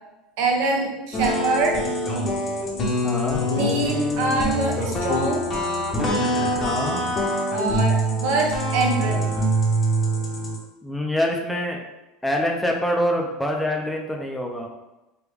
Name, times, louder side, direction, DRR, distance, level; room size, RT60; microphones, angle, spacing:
voice 1, 0.4-1.8 3.5-5.5 7.5-9.2, right 2 dB, 70° right, 0 dB, 0.7 m, -24 dB
sound 1, 1.1-10.6, equal, 35° left, 0.7 m, -24 dB
voice 2, 3.0-3.5 6.6-7.0 10.8-11.8 12.2-14.7, left 1 dB, 5° left, 0 dB, 0.4 m, -25 dB
3.3 x 2.2 x 3.4 m, 1.0 s
supercardioid pair, 120°, 0 cm